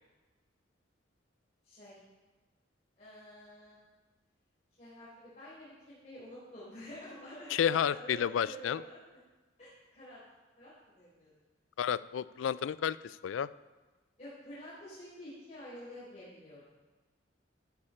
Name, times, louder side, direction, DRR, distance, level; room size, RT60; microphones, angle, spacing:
voice 1, 1.6-2.0 3.0-3.8 4.8-9.2 9.6-10.2 10.6-11.3 14.2-16.6, equal, 35° left, -11 dB, 4.0 m, -49 dB
voice 2, 7.5-8.8 11.8-13.5, left 8 dB, 90° left, 17 dB, 0.3 m, -31 dB
13.0 x 8.4 x 4.3 m, 1.2 s
head